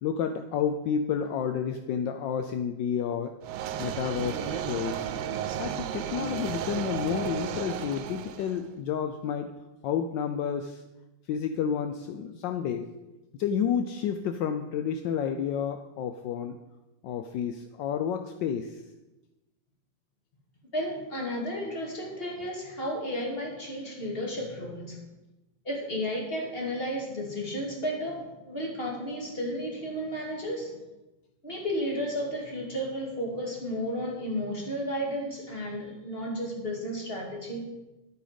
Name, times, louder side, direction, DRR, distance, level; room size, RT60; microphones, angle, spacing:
voice 1, 0.0-3.3 3.8-5.1 5.6-9.5 9.8-10.8 11.3-12.9 13.4-16.6 17.0-18.8, left 7 dB, 75° left, 7 dB, 1.3 m, -30 dB
sound 1, 3.4-8.6, right 9 dB, 80° right, 1.3 m, -34 dB
voice 2, 20.7-25.0 25.6-30.8 31.4-37.6, equal, 30° left, -1 dB, 2.6 m, -33 dB
11.5 x 8.8 x 5.1 m, 1.0 s
omnidirectional pair, 2.0 m